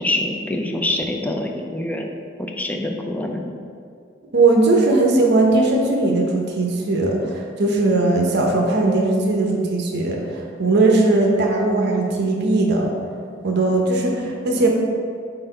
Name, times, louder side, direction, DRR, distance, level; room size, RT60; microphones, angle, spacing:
voice 1, 0.0-2.1 2.4-3.5, left 1 dB, 10° left, 2 dB, 0.4 m, -25 dB
voice 2, 4.3-12.9 13.4-14.7, right 2 dB, 55° right, 0 dB, 0.7 m, -19 dB
4.4 x 4.0 x 5.4 m, 2.3 s
head